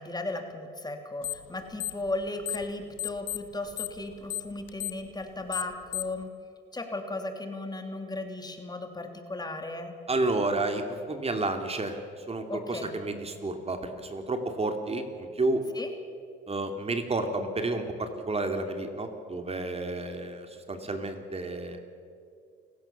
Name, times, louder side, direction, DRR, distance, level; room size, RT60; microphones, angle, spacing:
voice 1, 0.0-6.3 6.7-9.9 12.5-12.9 15.7-15.9, left 2 dB, 20° left, 5 dB, 3.1 m, -36 dB
sound 1, 1.2-1.5 1.8-2.7 3.0-6.2, left 14 dB, 75° left, 1.0 m, -34 dB
voice 2, 10.1-15.6 16.5-21.9, right 2 dB, 30° right, 6 dB, 2.7 m, -31 dB
29.0 x 16.0 x 7.3 m, 2.4 s
cardioid pair, 90°, 20 cm